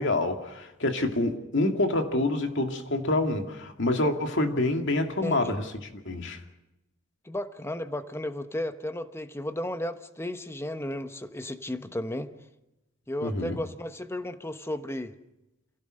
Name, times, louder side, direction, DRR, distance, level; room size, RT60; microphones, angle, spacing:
voice 1, 0.0-5.6 6.1-6.4 13.2-13.6, left 2 dB, 65° left, 2.3 m, -27 dB
voice 2, 5.2-5.5 7.2-12.3 13.1-15.2, left 1 dB, 15° left, 1.1 m, -34 dB
27.5 x 16.5 x 6.5 m
head